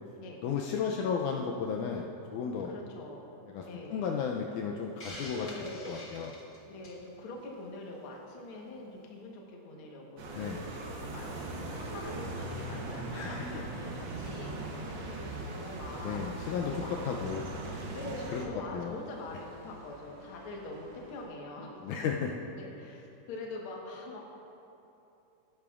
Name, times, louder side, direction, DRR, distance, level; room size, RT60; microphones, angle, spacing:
voice 1, 0.4-2.7 3.5-5.5 5.9-6.3 10.4-10.6 13.1-13.6 16.0-17.4 18.3-18.9 21.8-22.3, left 6 dB, 80° left, 1 dB, 1.9 m, -34 dB
voice 2, 2.6-3.3 3.6-4.1 5.3-6.0 6.7-14.5 14.9-16.9 17.2-17.3 17.9-22.0 22.4-24.2, left 2 dB, 55° left, -1 dB, 1.7 m, -44 dB
Hiss, 5.0-7.1, left 1 dB, 35° left, 1.2 m, -45 dB
sound 1, 10.2-18.5, right 2 dB, 75° right, 1.1 m, -39 dB
sound 2, 13.0-21.3, equal, 50° right, 2.8 m, -58 dB
18.0 x 10.5 x 2.4 m, 2.9 s
omnidirectional pair, 3.7 m